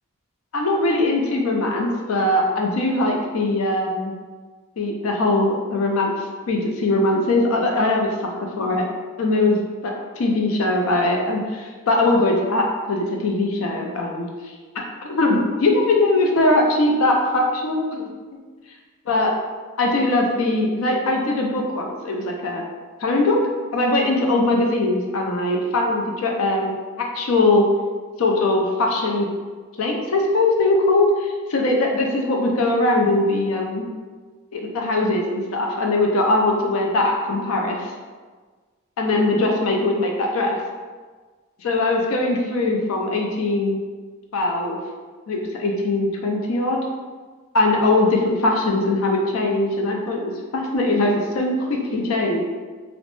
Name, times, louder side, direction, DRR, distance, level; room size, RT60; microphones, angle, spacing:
voice 1, 0.5-4.1 4.8-6.1 6.5-8.1 8.6-8.9 9.2-9.6 9.8-14.5 15.0-18.1 19.1-19.3 19.8-22.6 23.0-23.4 23.7-27.6 28.2-29.3 29.8-33.8 34.5-37.9 39.0-40.6 41.6-43.8 44.3-44.8 45.3-46.8 47.5-52.4, left 2 dB, 75° left, 1 dB, 0.4 m, -21 dB
3.0 x 2.0 x 3.0 m, 1.4 s
head